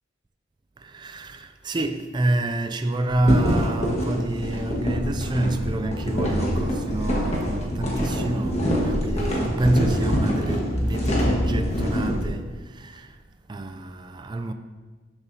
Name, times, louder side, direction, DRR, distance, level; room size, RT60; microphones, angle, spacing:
voice 1, 0.8-13.2 13.5-14.5, right 2 dB, 20° right, 0.3 m, -28 dB
sound 1, 3.0-12.3, equal, 65° left, 2.0 m, -31 dB
sound 2, 3.3-12.2, equal, 30° left, 1.4 m, -25 dB
12.0 x 6.8 x 2.7 m
head